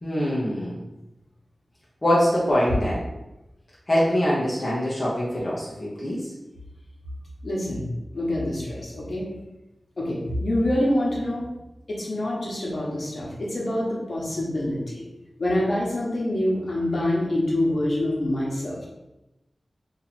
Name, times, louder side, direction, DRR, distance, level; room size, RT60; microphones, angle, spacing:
voice 1, 0.0-0.7 2.0-3.0 3.9-6.3, equal, 35° left, -7 dB, 0.9 m, -23 dB
voice 2, 7.4-7.9 8.1-9.3 10.0-11.4 11.9-15.0 15.4-18.9, left 1 dB, 65° left, -4 dB, 1.2 m, -26 dB
2.9 x 2.9 x 4.2 m, 0.96 s
cardioid pair, 55°, 0 cm